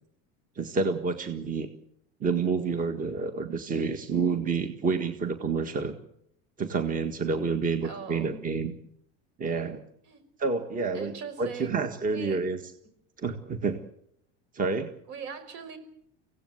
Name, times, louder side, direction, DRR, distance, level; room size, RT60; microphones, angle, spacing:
voice 1, 0.6-1.7 2.2-6.0 6.6-8.7 9.4-9.8 10.4-12.6 13.2-13.8 14.5-14.9, right 4 dB, 25° right, 8 dB, 1.7 m, -29 dB
voice 2, 7.8-8.4 10.1-10.2 10.9-11.8 12.1-12.4 15.1-15.8, right 6 dB, 65° right, 10 dB, 5.7 m, -40 dB
25.0 x 17.0 x 8.0 m, 0.73 s
supercardioid pair, 120°, 34 cm